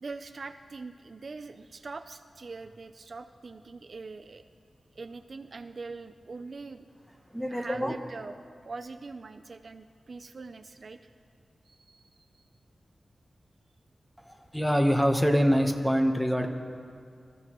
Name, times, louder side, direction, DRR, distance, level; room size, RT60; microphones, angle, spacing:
voice 1, 0.0-4.4 4.9-6.9 7.5-8.4 8.6-11.1 11.7-12.5, right 3 dB, 50° right, 8 dB, 0.4 m, -43 dB
voice 2, 7.3-8.0 14.3-16.5, equal, ahead, 4 dB, 1.0 m, -25 dB
26.0 x 14.0 x 3.0 m, 2.3 s
wide cardioid pair, 135°, 0 cm